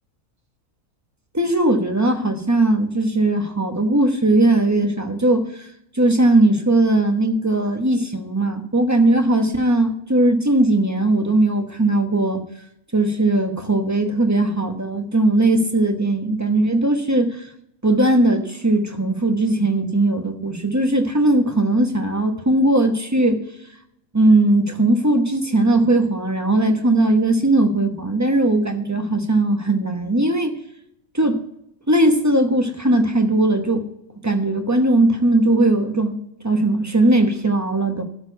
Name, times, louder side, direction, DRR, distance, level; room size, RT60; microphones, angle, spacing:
voice 1, 1.3-5.7 5.9-12.4 12.9-17.4 17.8-23.4 24.1-30.5 31.1-31.4 31.9-33.8 34.2-36.2 36.4-38.0, right 2 dB, 15° right, 4 dB, 0.8 m, -18 dB
12.5 x 4.5 x 7.9 m, 0.77 s
omnidirectional pair, 1.5 m